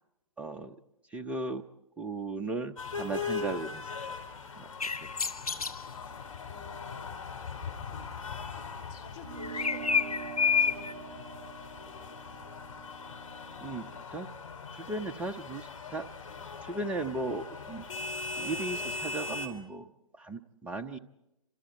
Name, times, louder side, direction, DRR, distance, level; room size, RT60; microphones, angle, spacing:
voice 1, 0.4-0.7 1.1-1.6 2.0-3.9 4.5-4.7 13.6-14.3 14.7-16.0 16.6-17.8 18.4-19.9 20.2-21.0, right 2 dB, 5° right, 6 dB, 0.8 m, -36 dB
sound 1, 2.8-19.5, left 4 dB, 65° left, 4.8 m, -40 dB
sound 2, 4.8-5.8 9.4-10.9, left 6 dB, 80° left, 1.1 m, -28 dB
voice 2, 6.5-7.1 8.9-11.3, left 4 dB, 35° left, 1 dB, 4.1 m, -49 dB
sound 3, 9.2-14.0, right 8 dB, 50° right, 1.4 m, -45 dB
29.0 x 26.0 x 4.5 m, 0.89 s
figure-of-eight pair, 125°, 19 cm